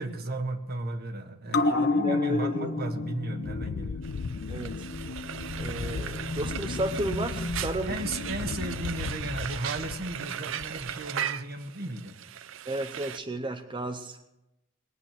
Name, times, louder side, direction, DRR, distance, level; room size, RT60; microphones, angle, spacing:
voice 1, 0.0-4.0 7.9-12.1, right 2 dB, 50° right, 7 dB, 1.5 m, -35 dB
sound 1, 1.5-8.4 8.7-8.8, left 2 dB, 55° left, 1.0 m, -31 dB
voice 2, 1.7-2.8 4.5-4.9 5.6-7.9 12.7-14.3, right 1 dB, 25° right, 5 dB, 0.7 m, -33 dB
Wind, 3.4-10.3 10.6-11.1, left 5 dB, 85° left, 0.5 m, -37 dB
Frying (food), 4.0-13.2, right 9 dB, 70° right, 0.6 m, -38 dB
21.0 x 8.4 x 7.5 m, 0.91 s
head